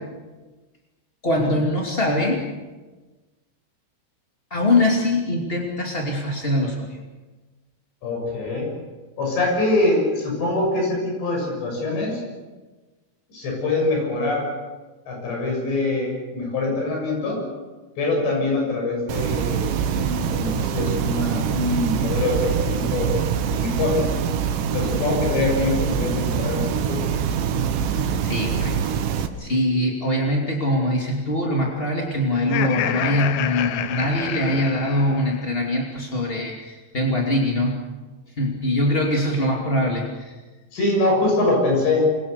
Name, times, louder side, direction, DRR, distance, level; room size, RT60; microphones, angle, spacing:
voice 1, 1.2-2.4 4.5-6.9 28.2-28.7 29.4-37.8 38.4-40.4, left 1 dB, 30° left, -1 dB, 1.1 m, -23 dB
voice 2, 8.0-8.7 9.2-12.2 13.3-14.5 15.1-17.4 18.0-23.1 23.6-24.1 24.7-27.0 39.2-39.3 40.7-42.1, left 2 dB, 60° left, 0 dB, 9.1 m, -24 dB
sound 1, 19.1-29.3, right 8 dB, 70° right, 3.2 m, -24 dB
Laughter, 32.3-35.6, left 11 dB, 85° left, 2.1 m, -28 dB
27.5 x 22.0 x 6.8 m, 1.2 s
omnidirectional pair, 5.8 m